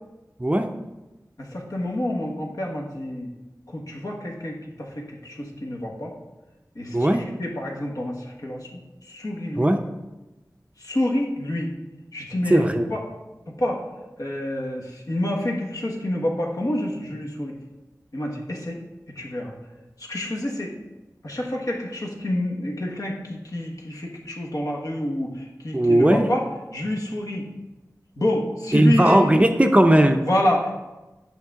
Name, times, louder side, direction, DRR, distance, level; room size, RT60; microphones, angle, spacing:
voice 1, 0.4-0.7 6.9-7.3 9.6-9.8 12.5-12.9 25.7-26.3 28.7-30.2, right 1 dB, 20° right, 5 dB, 0.5 m, -17 dB
voice 2, 1.4-3.3 3.7-6.1 6.7-9.7 10.8-11.7 12.1-13.0 13.5-13.8 14.2-17.6 18.1-18.8 19.1-19.5 20.0-20.7 21.2-26.5 26.7-27.4 28.2-29.2 30.3-30.7, left 1 dB, 60° left, -1 dB, 1.3 m, -28 dB
8.6 x 5.8 x 3.6 m, 1.1 s
wide cardioid pair, 60°, 7 cm